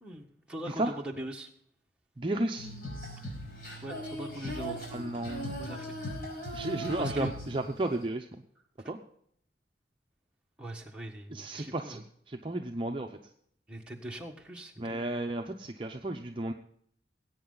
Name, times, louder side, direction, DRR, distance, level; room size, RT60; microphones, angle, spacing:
voice 1, 0.0-1.5 3.2-3.3 3.8-4.9 5.6-5.9 7.0-7.3 10.6-12.0 13.7-15.1, right 1 dB, 5° right, -1 dB, 1.4 m, -41 dB
voice 2, 2.2-2.7 4.9-5.6 6.5-8.3 8.9-9.0 11.3-12.0 12.3-13.1 14.8-16.5, right 2 dB, 30° right, 3 dB, 0.6 m, -33 dB
Female singing, 2.6-8.0, equal, 55° left, 5.1 m, -39 dB
19.5 x 8.7 x 3.9 m, 0.67 s
head